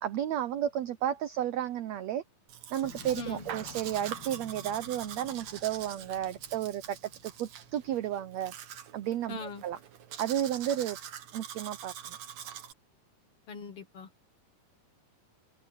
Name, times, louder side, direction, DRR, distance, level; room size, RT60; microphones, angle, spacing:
voice 1, 0.0-2.2 2.7-7.0 7.2-8.5 8.9-9.8 10.2-11.0 11.3-12.2, right 11 dB, 85° right, 1.5 m, -32 dB
Domestic sounds home sounds, 2.5-12.7, right 9 dB, 60° right, 2.5 m, -44 dB
Motorcycle, 2.8-8.0, left 5 dB, 35° left, 2.5 m, -52 dB
voice 2, 3.1-3.5 9.3-9.6 13.5-14.1, left 4 dB, 55° left, 1.9 m, -41 dB
omnidirectional pair, 4.1 m